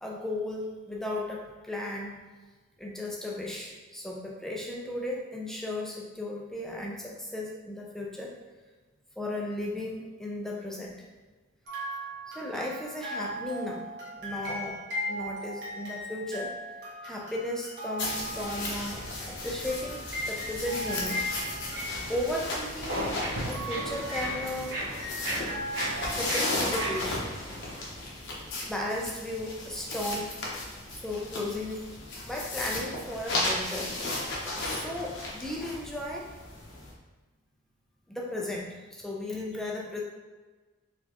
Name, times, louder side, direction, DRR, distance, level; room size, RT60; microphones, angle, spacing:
voice 1, 0.0-2.1 2.8-8.3 9.2-11.0 12.3-13.8 14.1-14.8 15.1-16.5 17.0-19.0 19.4-21.2 22.1-23.0 23.5-24.8 26.1-27.3 28.7-30.3 30.9-31.8 32.3-33.9 34.6-36.3 38.1-40.0, left 1 dB, ahead, -2 dB, 0.5 m, -35 dB
sound 1, 11.7-22.7 23.5-27.0, equal, 55° right, 1.2 m, -38 dB
sound 2, 18.0-36.9, left 2 dB, 60° left, 0.9 m, -35 dB
sound 3, 22.7-27.8, right 1 dB, 80° right, 1.5 m, -36 dB
4.4 x 3.4 x 2.9 m, 1.3 s
head